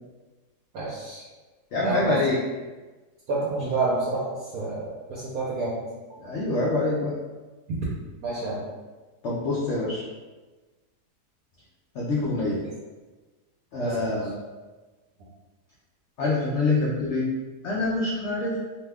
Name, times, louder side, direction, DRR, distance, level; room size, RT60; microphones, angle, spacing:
voice 1, 0.7-1.2 1.8-2.2 3.3-4.2 4.5-5.7 7.7-7.8 8.2-8.6 13.8-14.1, right 3 dB, 70° right, -7 dB, 1.0 m, -28 dB
voice 2, 1.7-2.4 3.6-3.8 6.2-7.2 9.2-10.0 11.9-12.6 13.7-14.3 16.2-17.3 17.6-18.6, left 2 dB, 80° left, -4 dB, 0.6 m, -25 dB
2.8 x 2.2 x 3.3 m, 1.3 s
omnidirectional pair, 1.7 m